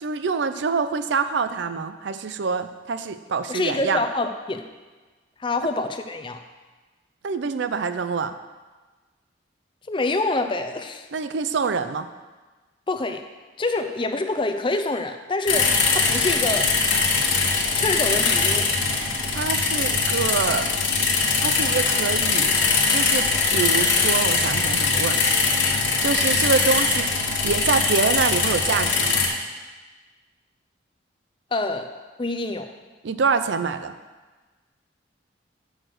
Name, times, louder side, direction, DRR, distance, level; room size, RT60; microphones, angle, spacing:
voice 1, 0.0-4.0 7.2-8.4 11.1-12.1 19.3-20.7 21.4-22.5 22.9-25.2 26.0-27.1 27.4-29.3 33.0-33.9, right 5 dB, 70° right, 10 dB, 0.4 m, -25 dB
voice 2, 3.5-4.7 5.4-6.4 9.9-11.1 12.9-13.2 13.6-16.7 17.7-18.7 31.5-31.9 32.2-32.7, left 2 dB, 25° left, 7 dB, 0.5 m, -26 dB
sound 1, 15.5-29.3, left 4 dB, 90° left, 1.4 m, -21 dB
6.5 x 6.5 x 6.0 m, 1.3 s
head